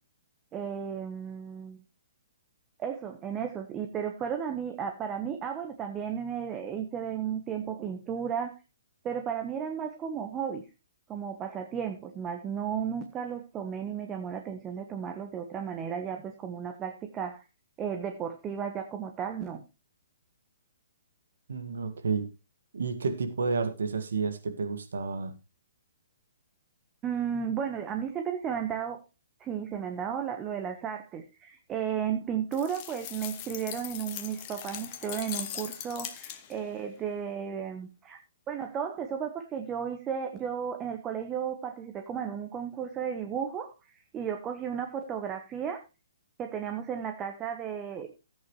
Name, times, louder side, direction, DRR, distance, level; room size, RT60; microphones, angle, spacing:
voice 1, 0.5-1.8 2.8-8.6 9.0-10.6 11.1-17.4 17.8-19.6 27.0-29.0 29.4-38.2 38.5-45.8 46.4-48.2, right 8 dB, 20° right, 6 dB, 1.2 m, -34 dB
voice 2, 21.5-22.3 22.7-25.3, right 4 dB, 70° right, 7 dB, 1.9 m, -30 dB
sound 1, 32.5-36.7, left 11 dB, 35° left, 1.2 m, -40 dB
14.0 x 8.8 x 3.2 m, 0.28 s
figure-of-eight pair, 130°, 0 cm